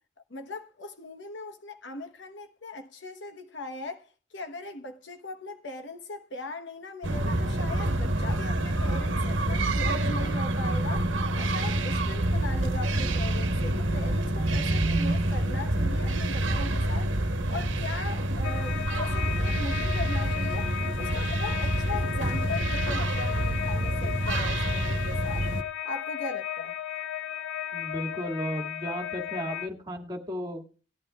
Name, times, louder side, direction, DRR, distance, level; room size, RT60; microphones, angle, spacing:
voice 1, 0.3-4.1 4.3-11.1 11.4-17.1 17.5-20.7 21.0-25.5 25.8-26.7, left 2 dB, 65° left, 1.2 m, -39 dB
sound 1, 7.0-25.6, right 1 dB, 75° right, 1.2 m, -27 dB
sound 2, 18.4-29.7, left 10 dB, 85° left, 0.5 m, -35 dB
voice 2, 27.7-30.6, equal, 20° right, 2.3 m, -34 dB
18.5 x 11.5 x 2.4 m
head